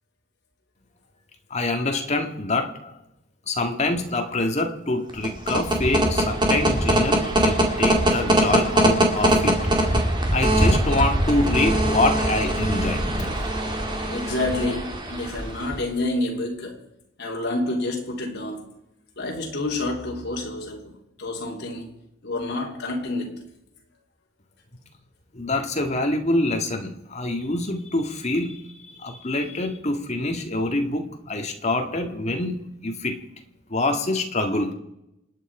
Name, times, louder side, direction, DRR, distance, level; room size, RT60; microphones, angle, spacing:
voice 1, 1.5-3.0 3.5-9.6 10.3-13.3 25.3-32.6 32.8-33.2 33.7-34.7, left 2 dB, 35° left, 1.9 m, -25 dB
sound 1, 5.1-15.9, right 1 dB, 25° right, 2.4 m, -22 dB
voice 2, 14.1-16.8 17.2-18.7 19.2-21.9 22.2-23.4, left 2 dB, 55° left, 3.5 m, -28 dB
28.0 x 9.4 x 4.9 m
head